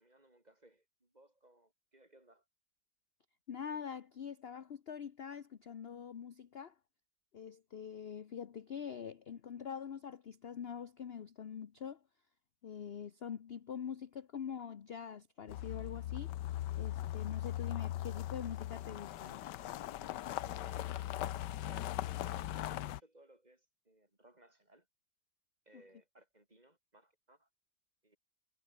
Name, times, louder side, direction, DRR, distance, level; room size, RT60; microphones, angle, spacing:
voice 1, 0.0-2.4 20.4-21.3 21.6-24.9 25.7-27.5 28.0-28.2, right 1 dB, 25° right, 4.1 m, -62 dB
voice 2, 3.5-6.7 7.3-12.0 12.6-16.4 16.8-19.4 25.7-25.8, left 7 dB, 45° left, 0.9 m, -44 dB
sound 1, 15.5-23.0, left 13 dB, 85° left, 1.4 m, -39 dB
omnidirectional pair, 1.8 m